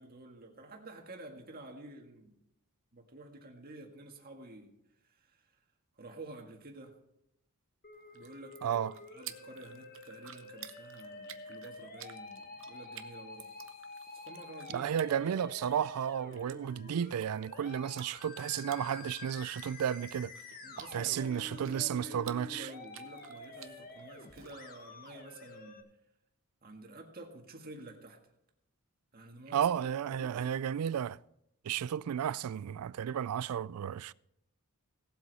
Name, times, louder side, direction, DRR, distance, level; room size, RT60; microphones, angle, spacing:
voice 1, 0.0-2.4 2.9-4.7 5.0-5.5 6.0-7.0 8.1-13.5 14.1-15.4 20.6-25.8 26.6-28.2 29.1-30.5, right 2 dB, 45° right, 1.8 m, -50 dB
Musical instrument, 7.8-25.8, left 3 dB, 40° left, 1.3 m, -49 dB
sound 1, 7.9-24.5, right 11 dB, 60° right, 0.8 m, -54 dB
voice 2, 8.6-8.9 14.7-20.3 20.9-22.7 29.5-31.2 31.6-34.1, right 9 dB, 80° right, 0.3 m, -33 dB
17.5 x 7.9 x 4.1 m
head